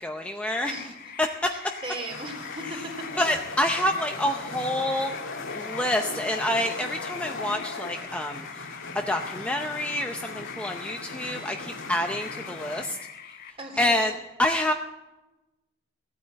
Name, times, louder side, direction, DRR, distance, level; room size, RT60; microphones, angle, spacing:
voice 1, 0.0-0.7 1.2-1.5 3.2-5.1 5.5-13.0 13.8-14.1 14.4-14.7, left 1 dB, 5° left, 3 dB, 0.6 m, -27 dB
sound 1, 0.5-13.5, left 7 dB, 50° left, 1.3 m, -43 dB
voice 2, 0.6-1.1 1.5-3.1 11.7-11.9 13.6-14.1, right 2 dB, 30° right, 2 dB, 3.5 m, -38 dB
sound 2, 1.8-12.9, left 3 dB, 85° left, 1.8 m, -38 dB
16.0 x 9.3 x 8.7 m, 1.0 s
head